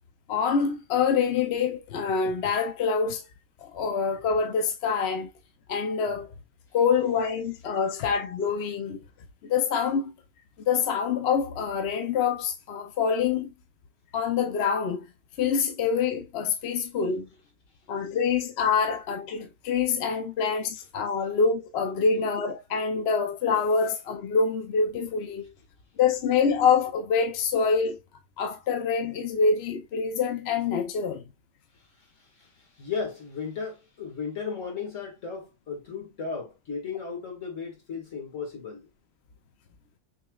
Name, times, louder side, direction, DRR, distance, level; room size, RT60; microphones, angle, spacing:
voice 1, 0.3-3.2 3.6-5.3 5.7-6.3 6.7-9.0 9.4-10.1 10.6-13.5 14.1-15.1 15.4-17.3 17.9-25.4 26.0-28.0 28.4-31.2, left 5 dB, 60° left, 0.9 m, -26 dB
voice 2, 32.8-38.9, left 5 dB, 85° left, 2.1 m, -35 dB
6.2 x 3.0 x 2.3 m
omnidirectional pair, 1.3 m